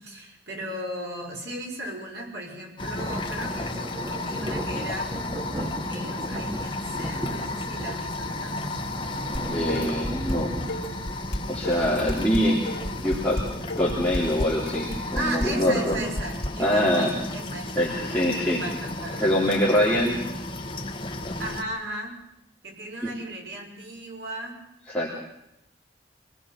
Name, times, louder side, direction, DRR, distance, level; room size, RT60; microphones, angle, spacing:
voice 1, 0.0-5.2 5.5-8.8 15.1-19.3 21.4-22.2 22.6-24.6, right 1 dB, 70° right, 0 dB, 6.2 m, -36 dB
sound 1, 2.8-21.6, left 2 dB, 25° left, 1.7 m, -34 dB
sound 2, 3.0-17.1 17.6-17.9 18.8-19.1 19.8-19.9 21.4-21.5, equal, 25° right, 2.3 m, -37 dB
Dishes pots and pans, 9.3-10.4 10.7-16.5, equal, 60° left, 2.8 m, -31 dB
voice 2, 9.5-10.5 11.5-12.6 13.0-13.4 13.7-16.0 16.6-17.1 17.8-18.6 19.2-20.2 23.0-23.1 24.9-25.1, equal, 5° left, -6 dB, 3.6 m, -24 dB
26.5 x 19.5 x 6.1 m, 0.88 s
head